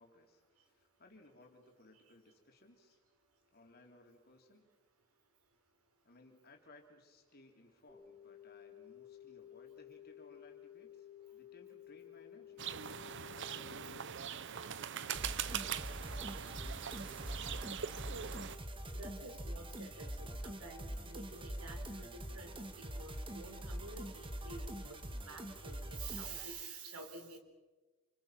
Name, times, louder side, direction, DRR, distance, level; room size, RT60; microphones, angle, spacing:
voice 1, 0.0-3.0 3.5-4.7 6.0-12.7 13.1-17.6, left 2 dB, 45° left, 2 dB, 3.9 m, -62 dB
sound 1, 7.9-14.0, left 11 dB, ahead, 6.3 m, -55 dB
sound 2, 12.6-18.6, right 8 dB, 55° right, 0.7 m, -42 dB
sound 3, 15.1-26.4, right 1 dB, 25° right, 1.8 m, -44 dB
voice 2, 18.9-27.4, right 4 dB, 75° right, 5 dB, 4.3 m, -50 dB
29.0 x 28.0 x 6.1 m, 1.2 s
head